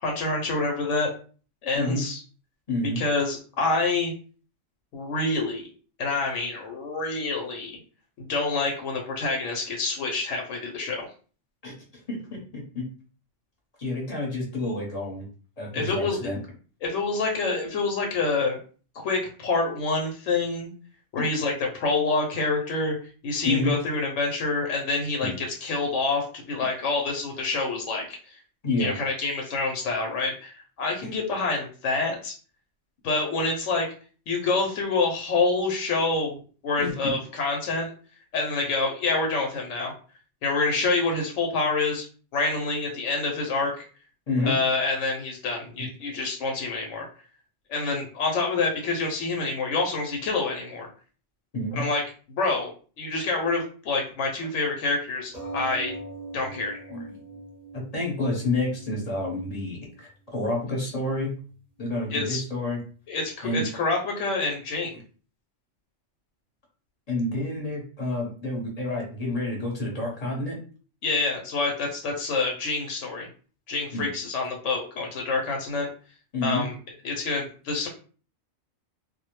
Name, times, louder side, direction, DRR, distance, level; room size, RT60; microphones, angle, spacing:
voice 1, 0.0-1.1 1.6-2.2 3.0-4.1 4.9-5.7 6.0-7.8 8.2-11.1 15.7-16.2 16.8-18.6 19.0-20.7 21.1-23.0 23.2-28.4 28.8-32.3 33.0-33.9 34.3-37.9 38.3-39.9 40.4-42.1 42.3-43.9 44.4-47.1 47.7-50.9 51.7-52.0 52.3-55.9 56.3-57.0 62.1-62.4 63.1-64.9 71.0-73.3 73.7-75.9 76.4-76.7 77.0-77.9, left 3 dB, 80° left, 1 dB, 0.9 m, -27 dB
voice 2, 2.7-3.0 11.6-11.7 12.1-12.8 13.8-15.3 15.6-16.4 23.4-23.8 25.2-25.3 28.6-28.9 36.8-37.1 44.3-44.5 51.5-51.8 56.9-57.0 57.7-61.3 61.8-62.8 63.4-63.6 67.1-70.6 73.9-74.1 76.3-76.7, left 2 dB, 35° left, -2 dB, 0.8 m, -29 dB
sound 1, 55.3-60.3 61.1-61.2 61.5-61.6, right 2 dB, 5° right, 0.8 m, -41 dB
2.3 x 2.1 x 2.9 m, 0.40 s
omnidirectional pair, 1.3 m